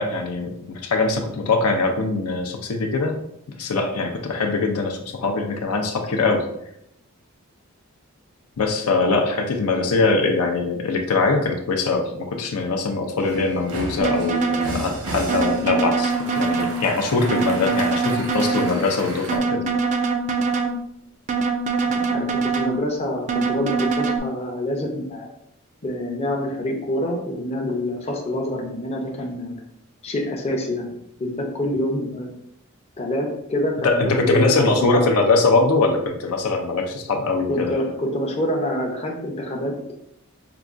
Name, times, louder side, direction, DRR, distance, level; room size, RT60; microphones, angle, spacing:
voice 1, 0.0-3.2 3.6-6.5 8.6-19.6 33.8-37.7, left 3 dB, 80° left, 3 dB, 0.5 m, -22 dB
sound 1, 13.2-19.4, right 2 dB, 80° right, 0.8 m, -34 dB
sound 2, 14.0-14.8 15.3-16.8 17.3-18.8 19.3-20.8 21.3-22.8 23.3-24.2, right 4 dB, 35° right, 0.3 m, -23 dB
voice 2, 21.8-25.3 25.8-29.6 30.0-32.3 33.0-35.2 37.5-39.9, left 1 dB, 30° left, -1 dB, 0.6 m, -26 dB
4.8 x 2.3 x 2.4 m, 0.75 s
head